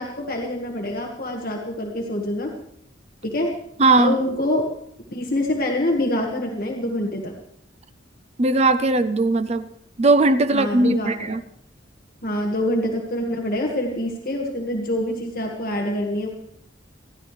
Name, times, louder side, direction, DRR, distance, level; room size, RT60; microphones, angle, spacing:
voice 1, 0.0-2.5 3.2-3.5 4.0-4.7 5.1-7.3 10.5-11.3 12.2-16.3, left 1 dB, 50° left, 1 dB, 1.7 m, -25 dB
voice 2, 3.8-4.1 8.4-9.6 10.0-11.4, right 2 dB, 35° right, 13 dB, 0.5 m, -18 dB
29.0 x 11.5 x 3.3 m, 0.72 s
head